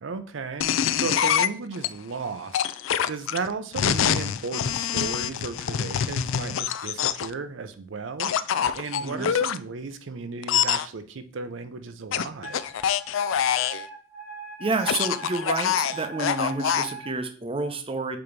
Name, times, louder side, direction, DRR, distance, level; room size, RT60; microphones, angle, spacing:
voice 1, 0.0-2.6 3.0-8.3 8.7-12.6, right 4 dB, 70° right, 9 dB, 0.5 m, -34 dB
sound 1, 0.6-1.9 2.5-7.3 8.2-9.6 10.4-10.9 12.1-13.8 14.7-16.9, left 9 dB, 80° left, 0.4 m, -25 dB
voice 2, 9.0-9.3 14.6-18.2, right 3 dB, 30° right, 7 dB, 0.7 m, -29 dB
Wind instrument woodwind instrument, 12.4-17.1, right 5 dB, 50° left, 2.2 m, -40 dB
6.8 x 3.0 x 5.1 m, 0.43 s
head